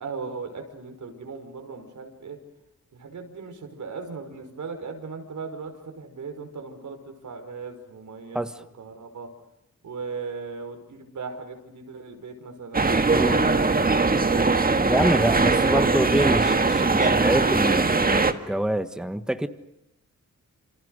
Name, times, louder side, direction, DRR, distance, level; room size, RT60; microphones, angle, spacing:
voice 1, 0.0-2.4 2.9-9.3 9.8-14.0 14.3-14.8, right 4 dB, 80° right, 5 dB, 5.4 m, -38 dB
sound 1, 12.7-18.3, right 3 dB, 30° right, 1.8 m, -21 dB
voice 2, 13.1-13.4 14.9-19.5, right 1 dB, ahead, 10 dB, 1.4 m, -26 dB
28.5 x 27.5 x 6.6 m, 0.87 s
wide cardioid pair, 100°, 29 cm